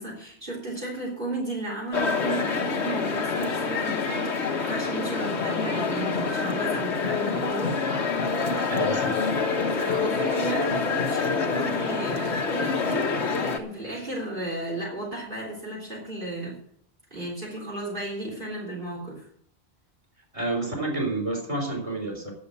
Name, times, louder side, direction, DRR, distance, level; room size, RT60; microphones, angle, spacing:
voice 1, 0.0-7.8 9.6-16.6 17.1-19.3, right 2 dB, 50° right, -3 dB, 3.7 m, -34 dB
sound 1, 1.9-13.6, left 4 dB, 85° left, 1.5 m, -26 dB
voice 2, 8.7-9.3 20.3-22.3, right 2 dB, 30° right, 0 dB, 4.2 m, -29 dB
11.0 x 7.7 x 8.4 m, 0.65 s
omnidirectional pair, 1.1 m